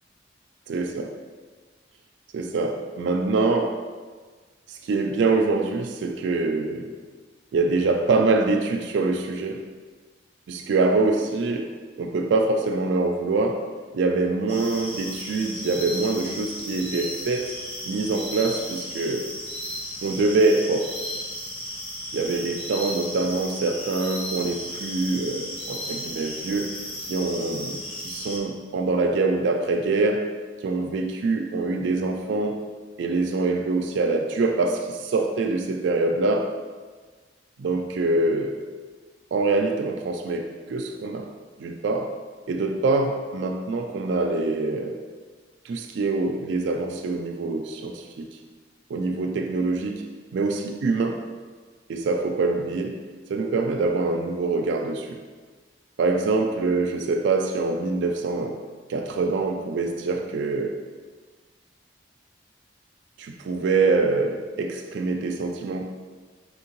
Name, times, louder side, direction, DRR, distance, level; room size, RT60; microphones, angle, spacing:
voice 1, 0.7-1.1 2.3-3.8 4.7-6.9 7.5-9.6 10.5-13.7 13.9-17.5 17.8-19.3 20.0-20.9 22.1-26.8 27.1-30.3 30.6-32.6 33.0-36.5 37.6-38.6 39.3-41.3 41.6-42.1 42.5-45.0 45.6-48.4 48.9-50.1 50.3-51.3 51.9-53.0 53.3-55.2 56.0-58.6 58.9-60.8 63.2-65.9, right 3 dB, 85° right, 3 dB, 0.3 m, -25 dB
sound 1, 14.5-28.4, equal, 35° left, 0.8 m, -35 dB
4.3 x 3.6 x 3.0 m, 1.4 s
head